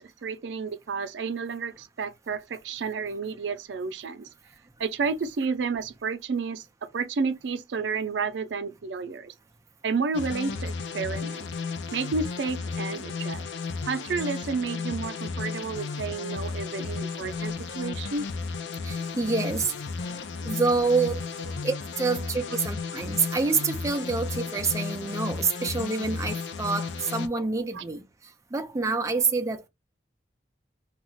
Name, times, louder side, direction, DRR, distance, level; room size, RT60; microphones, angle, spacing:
voice 1, 0.0-4.3 4.8-9.3 9.8-11.5 11.9-13.4 13.9-18.3 27.7-27.8, right 4 dB, 85° right, 0.4 m, -31 dB
sound 1, 10.1-27.3, left 4 dB, 85° left, 0.4 m, -34 dB
voice 2, 18.8-19.7 20.4-21.2 21.6-28.0 28.5-29.7, right 4 dB, 15° right, 0.4 m, -27 dB
2.4 x 2.0 x 3.7 m
head